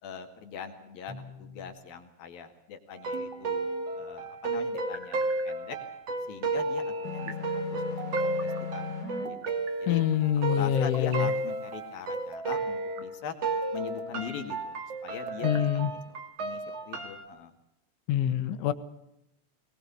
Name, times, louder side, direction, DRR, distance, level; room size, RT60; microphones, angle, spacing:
voice 1, 0.0-3.7 4.0-5.8 6.3-8.9 9.3-10.0 10.5-13.4 13.7-17.5, left 7 dB, 55° left, 5 dB, 3.2 m, -42 dB
sound 1, 1.1-1.8 3.1-3.9 4.7-5.5 6.6-7.4 8.0-8.6 9.2-10.1 10.7-11.4 12.1-13.1 13.6-14.2 14.9-15.7, right 5 dB, 75° right, 1.3 m, -42 dB
sound 2, 3.0-13.1 13.4-17.2, right 2 dB, 45° right, 2.3 m, -33 dB
sound 3, 7.0-9.3, left 6 dB, 10° left, 2.6 m, -37 dB
voice 2, 9.9-11.3 15.4-15.9 18.1-18.7, left 11 dB, 75° left, 11 dB, 3.4 m, -26 dB
22.0 x 21.0 x 7.0 m, 0.83 s
omnidirectional pair, 5.8 m